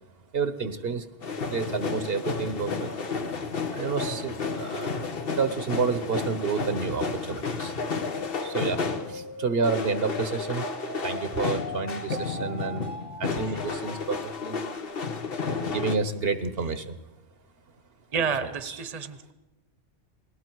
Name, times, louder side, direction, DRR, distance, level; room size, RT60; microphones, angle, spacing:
voice 1, 0.3-1.1 1.5-2.9 3.7-7.8 8.4-10.7 11.0-12.9 13.2-14.7 15.4-17.0 18.7-18.8, right 5 dB, 65° right, 11 dB, 1.2 m, -30 dB
sound 1, 1.2-9.3 9.6-16.0, left 4 dB, 60° left, 1.3 m, -32 dB
sound 2, 7.8-14.8, left 2 dB, 20° left, 0.9 m, -41 dB
voice 2, 18.1-19.3, right 6 dB, 40° right, 12 dB, 1.0 m, -30 dB
29.0 x 19.5 x 4.6 m, 1.1 s
omnidirectional pair, 1.1 m